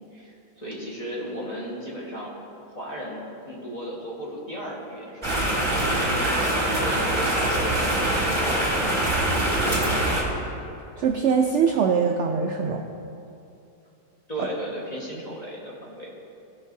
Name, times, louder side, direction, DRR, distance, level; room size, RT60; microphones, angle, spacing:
voice 1, 0.0-2.3 2.7-6.6 6.9-8.7 9.4-10.3 14.3-16.1, equal, 25° left, -5 dB, 1.4 m, -36 dB
sound 1, 5.2-10.2, right 1 dB, 15° right, 1.4 m, -23 dB
voice 2, 11.0-12.8, right 6 dB, 90° right, 3 dB, 0.6 m, -22 dB
16.0 x 5.4 x 2.7 m, 2.7 s
omnidirectional pair, 1.8 m